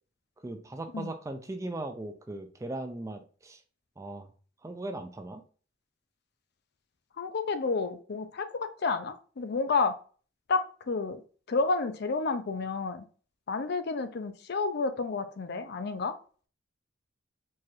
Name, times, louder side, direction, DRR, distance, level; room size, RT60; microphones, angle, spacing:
voice 1, 0.4-3.6 4.0-4.3 4.6-5.4, right 2 dB, 15° right, 7 dB, 0.3 m, -38 dB
voice 2, 7.2-9.9 10.5-11.2 11.5-13.0 13.5-16.1, left 4 dB, 55° left, 9 dB, 0.4 m, -30 dB
4.6 x 2.5 x 2.9 m, 0.40 s
head